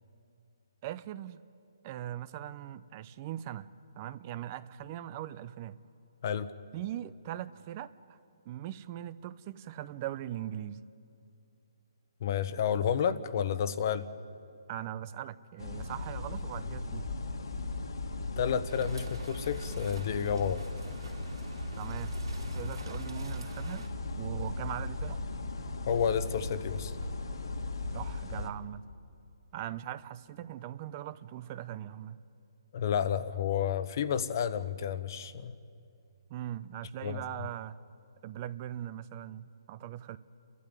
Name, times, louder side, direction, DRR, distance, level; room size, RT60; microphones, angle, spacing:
voice 1, 0.8-1.4 1.8-3.7 4.0-5.8 6.7-8.2 8.5-10.8 14.7-17.1 21.8-22.1 22.5-23.8 24.2-25.2 27.9-28.8 29.5-32.2 36.3-37.8 38.2-40.2, right 12 dB, 30° right, 16 dB, 0.5 m, -40 dB
voice 2, 12.2-14.1 18.4-20.6 25.8-26.9 32.7-35.5 37.0-37.2, left 8 dB, 45° left, 13 dB, 1.0 m, -30 dB
Forest ambience with beach in background, 15.6-28.5, left 2 dB, 85° left, 1.9 m, -37 dB
sound 1, 18.7-23.9, right 4 dB, 80° right, 3.3 m, -50 dB
29.5 x 12.5 x 9.6 m, 2.6 s
hypercardioid pair, 155°, 2 cm